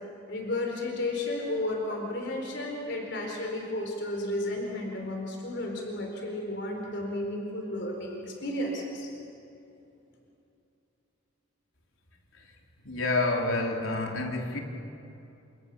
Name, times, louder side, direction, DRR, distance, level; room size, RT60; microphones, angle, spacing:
voice 1, 0.3-9.1, left 1 dB, 60° left, 0 dB, 4.3 m, -33 dB
voice 2, 12.8-14.6, left 2 dB, 80° left, 1 dB, 3.9 m, -28 dB
30.0 x 28.0 x 7.0 m, 2.8 s
head